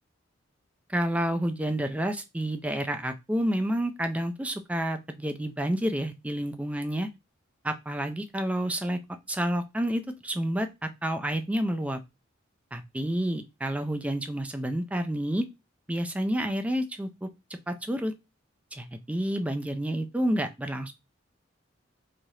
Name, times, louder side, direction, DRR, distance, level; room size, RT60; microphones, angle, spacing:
voice 1, 0.9-7.1 7.6-9.0 9.3-12.0 12.7-15.5 15.9-17.3 17.7-18.1 18.7-20.9, right 1 dB, 5° right, 7 dB, 0.3 m, -29 dB
3.1 x 2.4 x 2.7 m, 0.23 s
head